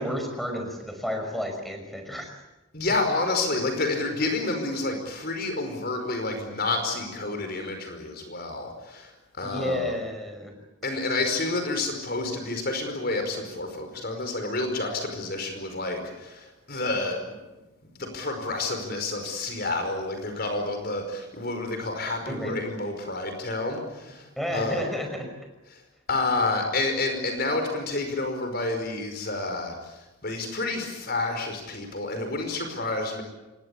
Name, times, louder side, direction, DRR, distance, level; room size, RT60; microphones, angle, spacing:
voice 1, 0.0-2.3 9.4-10.6 22.2-22.7 24.4-25.3, left 1 dB, ahead, 4 dB, 5.4 m, -31 dB
voice 2, 2.7-9.8 10.8-17.4 18.0-24.9 25.7-25.8 26.1-33.2, left 2 dB, 45° left, 5 dB, 5.0 m, -29 dB
27.5 x 22.5 x 8.5 m, 1.0 s
head